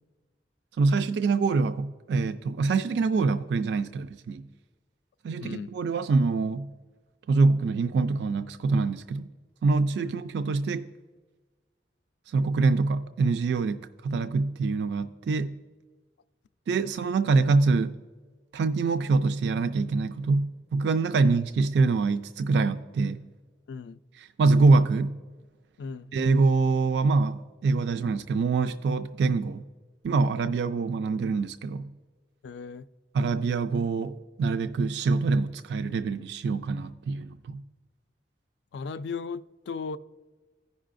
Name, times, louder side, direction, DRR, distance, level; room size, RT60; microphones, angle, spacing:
voice 1, 0.8-4.4 5.2-6.7 7.3-9.3 9.6-10.9 12.3-15.6 16.7-18.0 18.5-23.2 24.4-25.2 26.1-29.6 30.0-31.9 33.1-37.6, right 4 dB, 75° right, 0.3 m, -25 dB
voice 2, 5.4-5.7 10.0-10.1 21.2-21.3 23.7-24.0 25.8-26.1 32.4-32.9 38.7-40.0, left 5 dB, 75° left, 0.3 m, -36 dB
15.5 x 5.5 x 2.5 m
head